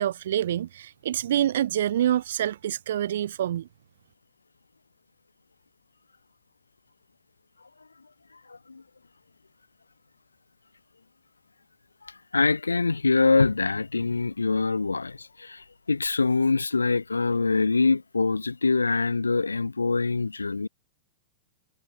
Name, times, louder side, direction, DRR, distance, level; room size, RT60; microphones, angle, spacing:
voice 1, 0.0-3.7, right 11 dB, 65° right, 3.1 m, -26 dB
voice 2, 8.5-8.8 12.3-20.7, left 4 dB, 85° left, 1.8 m, -24 dB
figure-of-eight pair, 100°, 0 cm